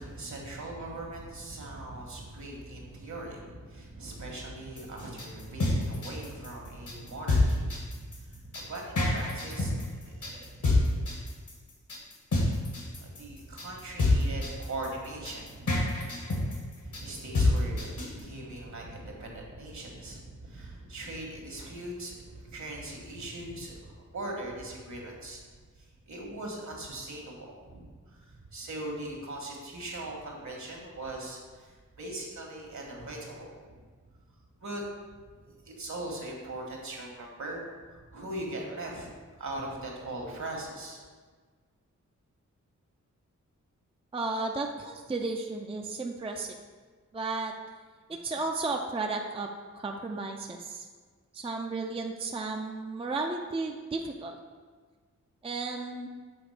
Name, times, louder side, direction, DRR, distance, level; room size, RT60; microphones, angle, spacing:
voice 1, 0.0-10.6 13.0-16.0 16.8-25.4 25.8-33.8 34.6-34.8 35.6-37.6 37.9-39.1 39.4-41.0, right 1 dB, 65° right, -1 dB, 1.6 m, -40 dB
sound 1, 4.8-18.2, left 2 dB, 75° left, 1.6 m, -27 dB
voice 2, 44.1-46.5 47.1-47.5 48.2-49.5 49.7-50.9 51.3-54.4 55.4-56.1, right 3 dB, 20° right, 2 dB, 0.4 m, -33 dB
7.1 x 3.6 x 5.0 m, 1.5 s
wide cardioid pair, 85°, 31 cm